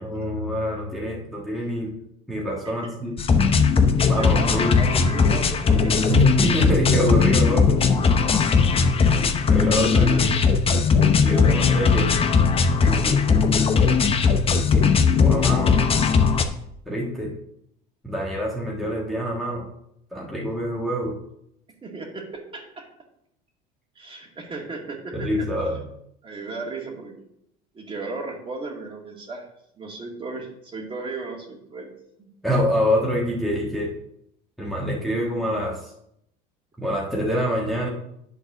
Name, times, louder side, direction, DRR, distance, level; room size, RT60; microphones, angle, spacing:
voice 1, 0.0-1.9 2.3-3.1 4.1-4.8 6.1-7.8 9.5-10.3 11.2-12.1 12.8-13.2 14.7-14.9 15.2-15.7 16.9-17.3 18.0-19.7 20.1-21.1 25.1-25.8 32.4-33.9 34.6-35.9 36.8-37.9, equal, ahead, -4 dB, 1.5 m, -25 dB
sound 1, 3.2-16.5, left 5 dB, 30° left, 0.8 m, -19 dB
voice 2, 4.1-6.4 8.6-9.0 9.5-10.3 11.0-12.0 12.9-13.4 21.8-22.9 24.0-25.9 26.2-27.2 27.7-29.5 29.8-31.9 32.2-32.3, right 3 dB, 25° right, 0 dB, 2.2 m, -36 dB
9.1 x 3.9 x 6.2 m, 0.77 s
supercardioid pair, 105°, 20 cm